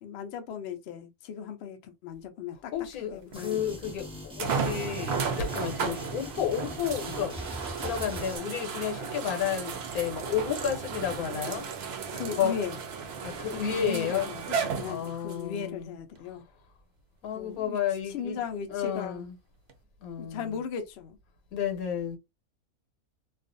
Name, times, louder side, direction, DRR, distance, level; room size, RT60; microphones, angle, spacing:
voice 1, 0.0-2.7 3.1-3.6 5.8-6.1 12.1-12.8 13.5-16.4 17.3-17.8 18.1-19.3 20.2-21.2, left 7 dB, 65° left, 0.6 m, -37 dB
voice 2, 2.7-7.4 7.8-11.7 12.4-12.5 13.2-14.3 14.8-15.9 17.2-18.4 18.7-19.3 20.0-20.6 21.5-22.2, left 8 dB, 85° left, 1.2 m, -31 dB
sound 1, 3.3-8.4, equal, 5° right, 0.5 m, -42 dB
sound 2, 3.3-3.4 4.4-15.4 16.2-16.3 19.7-19.8, right 5 dB, 65° right, 0.7 m, -34 dB
2.4 x 2.4 x 2.5 m
omnidirectional pair, 1.5 m